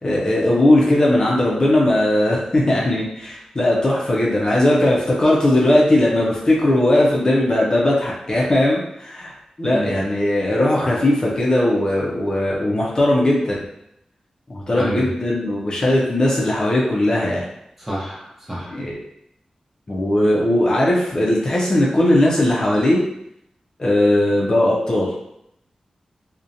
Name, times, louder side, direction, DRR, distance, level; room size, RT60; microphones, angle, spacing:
voice 1, 0.0-13.6 14.5-17.4 18.7-19.0 19.9-23.0 23.8-25.1, left 1 dB, 35° left, -4 dB, 0.5 m, -18 dB
voice 2, 9.7-10.1 14.7-15.1 17.8-18.8, right 1 dB, 10° right, -5 dB, 0.7 m, -29 dB
2.6 x 2.1 x 2.5 m, 0.78 s
wide cardioid pair, 100°, 2 cm